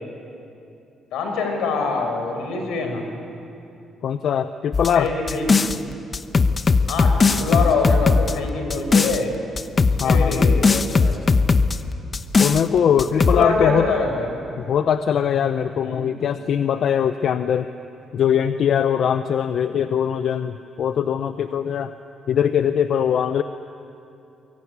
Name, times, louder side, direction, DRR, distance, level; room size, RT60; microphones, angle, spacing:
voice 1, 1.1-3.0 4.9-5.6 6.9-9.3 10.0-11.2 12.6-12.9 13.2-14.3 15.8-16.1, left 4 dB, 85° left, 4 dB, 5.2 m, -24 dB
voice 2, 4.0-5.1 10.0-10.5 12.4-13.9 14.6-17.7 18.1-21.9 22.3-23.4, left 8 dB, 65° left, 10 dB, 0.8 m, -21 dB
sound 1, 4.7-5.8 6.1-9.2 9.6-11.8 12.1-12.6 13.0-13.4, left 4 dB, 35° left, 1.0 m, -18 dB
23.0 x 23.0 x 9.6 m, 2.7 s
cardioid pair, 90°, 0 cm